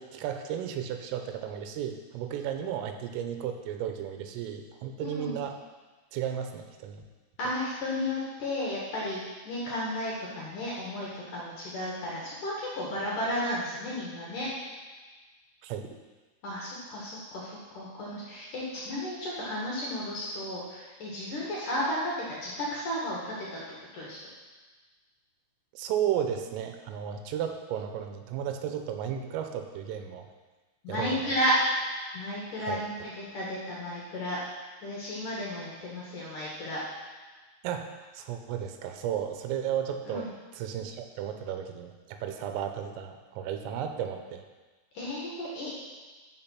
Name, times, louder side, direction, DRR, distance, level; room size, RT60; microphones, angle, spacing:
voice 1, 0.0-5.6 6.1-7.0 15.6-15.9 25.7-30.3 30.9-31.3 32.6-32.8 37.6-44.4, right 9 dB, 85° right, 6 dB, 3.4 m, -34 dB
voice 2, 5.0-5.4 7.4-9.2 9.4-14.5 16.4-23.6 23.9-24.2 30.8-31.6 32.1-34.4 34.8-36.8 40.0-40.3 44.9-45.7, left 1 dB, 60° left, -5 dB, 2.4 m, -33 dB
13.0 x 5.3 x 5.7 m, 1.3 s
omnidirectional pair, 5.9 m